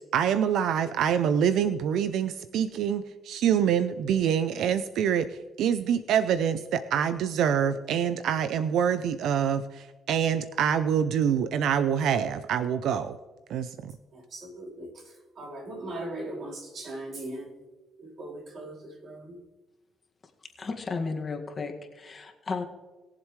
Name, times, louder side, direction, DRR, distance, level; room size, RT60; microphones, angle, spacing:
voice 1, 0.1-13.2 13.5-13.9, right 8 dB, 80° right, 11 dB, 0.5 m, -26 dB
voice 2, 14.1-17.6 18.0-19.4, right 1 dB, 60° right, -2 dB, 4.3 m, -39 dB
voice 3, 20.6-22.6, left 4 dB, 35° left, 3 dB, 1.9 m, -34 dB
21.5 x 7.5 x 3.2 m, 1.2 s
cardioid pair, 90°, 0 cm